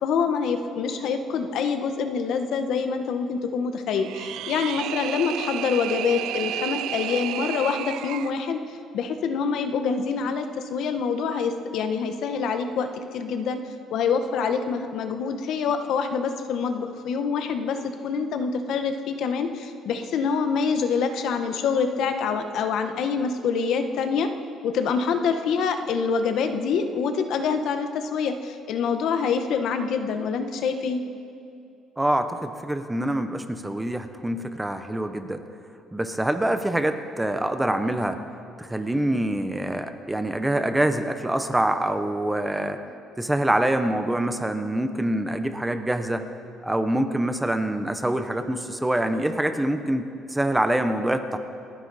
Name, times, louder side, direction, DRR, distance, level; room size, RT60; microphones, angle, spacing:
voice 1, 0.0-13.6 13.9-24.3 24.6-31.0, left 5 dB, 60° left, 7 dB, 1.0 m, -26 dB
sound 1, 3.9-8.4, right 12 dB, 75° right, 0.4 m, -32 dB
voice 2, 32.0-35.4 35.9-38.2 38.6-42.8 43.2-46.2 46.6-51.4, right 1 dB, 5° right, 8 dB, 0.7 m, -25 dB
28.5 x 9.9 x 4.1 m, 2.6 s
cardioid pair, 160°, 0 cm